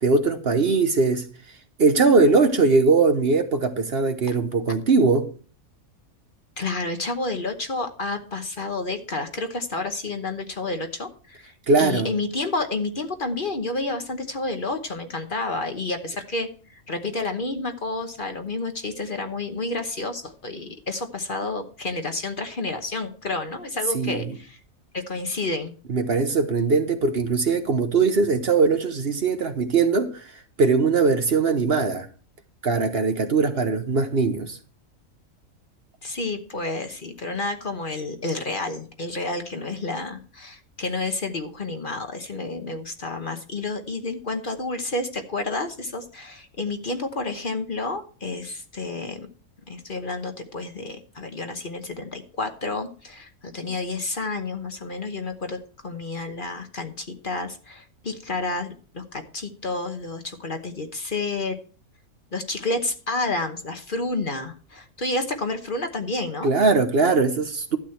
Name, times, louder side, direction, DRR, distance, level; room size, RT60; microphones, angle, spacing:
voice 1, 0.0-1.2 1.8-5.3 11.7-12.1 23.9-24.2 25.9-30.2 30.6-32.1 32.6-34.6 66.4-67.8, right 4 dB, 50° right, 1.1 m, -20 dB
voice 2, 6.6-24.6 24.9-25.7 36.0-49.3 49.7-61.6 62.3-66.5, left 2 dB, 40° left, 1.1 m, -30 dB
12.5 x 8.2 x 4.5 m
omnidirectional pair, 1.4 m